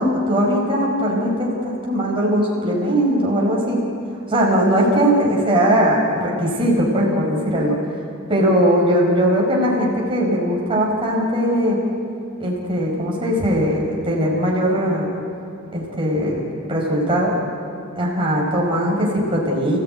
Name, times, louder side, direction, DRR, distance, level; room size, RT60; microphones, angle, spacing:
voice 1, 0.0-3.8 4.3-7.8 8.3-11.8 12.4-15.1 15.7-16.4 16.7-17.3 18.0-19.8, equal, 25° right, -3 dB, 5.3 m, -19 dB
29.5 x 16.5 x 9.2 m, 2.4 s
head